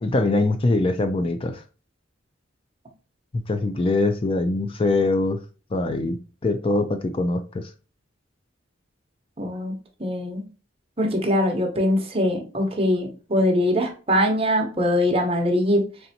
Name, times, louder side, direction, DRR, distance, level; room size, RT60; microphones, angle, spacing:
voice 1, 0.0-1.6 3.5-5.4 5.7-7.7, left 2 dB, 30° left, 7 dB, 0.4 m, -23 dB
voice 2, 9.4-9.7 10.0-10.4 11.0-15.8, left 1 dB, 30° right, 2 dB, 0.9 m, -22 dB
4.0 x 3.3 x 2.8 m, 0.35 s
head